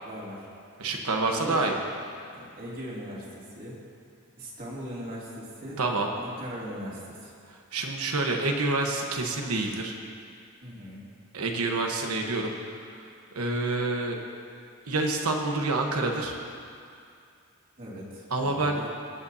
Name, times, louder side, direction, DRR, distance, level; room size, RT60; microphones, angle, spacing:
voice 1, 0.0-0.5 1.3-1.7 2.3-3.8 4.4-5.8 6.1-7.3 10.6-11.0 17.8-18.8, equal, 40° right, -6 dB, 2.8 m, -39 dB
voice 2, 0.8-1.7 5.8-6.1 7.7-10.0 11.3-12.5 13.3-14.2 14.9-16.3 18.3-18.8, right 2 dB, 85° right, 2 dB, 1.2 m, -27 dB
22.5 x 10.0 x 2.8 m, 2.4 s
head